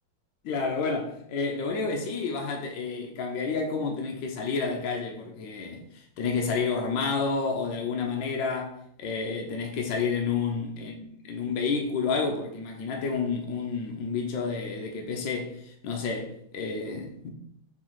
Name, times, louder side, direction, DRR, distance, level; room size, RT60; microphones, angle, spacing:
voice 1, 0.4-17.3, left 4 dB, 70° left, 1.2 m, -30 dB
4.6 x 3.5 x 3.0 m
omnidirectional pair, 2.3 m